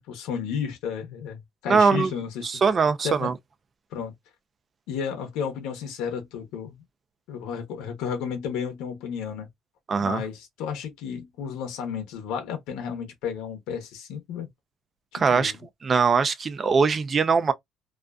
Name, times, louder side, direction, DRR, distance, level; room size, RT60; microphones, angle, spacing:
voice 1, 0.1-2.6 3.0-3.3 3.9-4.1 4.9-6.8 7.3-9.5 10.0-14.5 15.1-15.5, left 7 dB, 85° left, 0.8 m, -32 dB
voice 2, 1.7-2.1 2.4-3.3 9.9-10.2 15.1-15.5 15.8-17.5, right 5 dB, 30° right, 0.4 m, -21 dB
2.4 x 2.4 x 2.2 m
cardioid pair, 140°, 0 cm